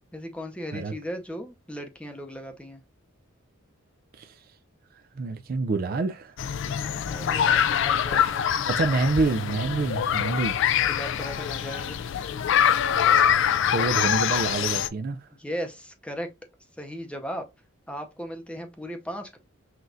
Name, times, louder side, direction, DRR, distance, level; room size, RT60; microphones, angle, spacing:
voice 1, 0.1-2.8 7.0-8.8 10.9-12.0 15.4-16.3 16.8-17.5 17.9-19.4, equal, 5° left, 0.7 m, -37 dB
voice 2, 5.2-6.3 8.7-10.6 13.7-15.2, right 3 dB, 45° right, 0.3 m, -27 dB
sound 1, 6.4-14.9, left 8 dB, 55° left, 0.3 m, -24 dB
5.9 x 2.4 x 2.6 m
head